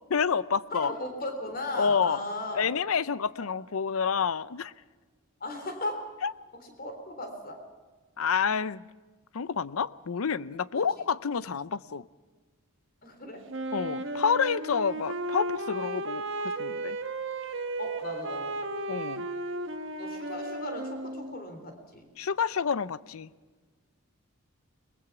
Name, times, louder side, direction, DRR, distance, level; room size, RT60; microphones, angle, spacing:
voice 1, 0.1-0.9 1.8-2.2 2.5-4.7 6.2-6.3 8.2-8.8 9.3-12.0 13.7-16.2 16.6-17.0 18.9-19.3 22.2-23.3, left 6 dB, 80° left, 0.6 m, -28 dB
voice 2, 0.7-2.6 5.4-5.9 6.8-7.6 13.0-13.4 17.8-18.6 20.0-22.0, left 2 dB, 45° left, 3.6 m, -36 dB
Wind instrument woodwind instrument, 13.5-21.5, right 2 dB, 60° right, 1.5 m, -34 dB
22.5 x 20.0 x 6.0 m
head